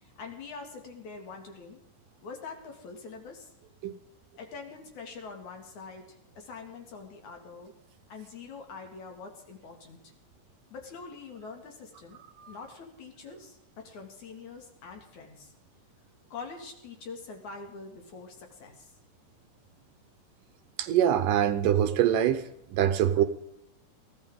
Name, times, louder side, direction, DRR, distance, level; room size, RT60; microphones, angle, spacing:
voice 1, 0.0-1.8 2.2-3.5 4.4-6.1 6.4-7.7 8.1-10.0 10.7-12.2 12.5-15.5 16.3-18.9, left 4 dB, 60° left, 3 dB, 3.4 m, -44 dB
voice 2, 20.8-22.4 22.7-23.2, right 10 dB, 75° right, 10 dB, 2.3 m, -24 dB
21.5 x 16.0 x 3.7 m, 0.77 s
omnidirectional pair, 4.0 m